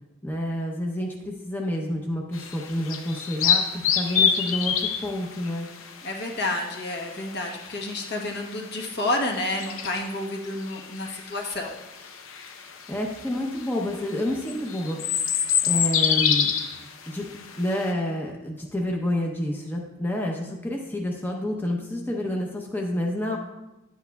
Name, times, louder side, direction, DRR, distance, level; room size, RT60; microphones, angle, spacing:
voice 1, 0.2-5.7 12.9-16.5 17.1-17.3 17.6-23.4, left 1 dB, 10° left, -1 dB, 0.7 m, -29 dB
sound 1, 2.3-17.9, left 7 dB, 75° left, 0.7 m, -28 dB
voice 2, 6.0-12.1, left 2 dB, 50° left, 0 dB, 1.2 m, -30 dB
10.5 x 8.2 x 2.3 m, 1.0 s
head